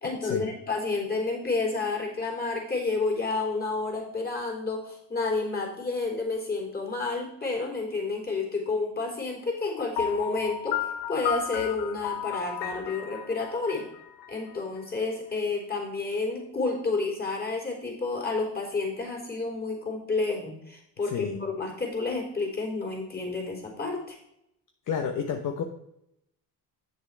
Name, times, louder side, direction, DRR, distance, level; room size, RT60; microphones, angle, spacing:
voice 1, 0.0-13.9 14.3-24.2, left 3 dB, 25° left, 1 dB, 3.6 m, -30 dB
Piano, 10.0-14.8, left 9 dB, 85° left, 1.1 m, -34 dB
voice 2, 21.0-21.5 24.9-25.6, left 6 dB, 50° left, 5 dB, 1.0 m, -30 dB
8.4 x 6.7 x 4.5 m, 0.78 s
cardioid pair, 105°, 40 cm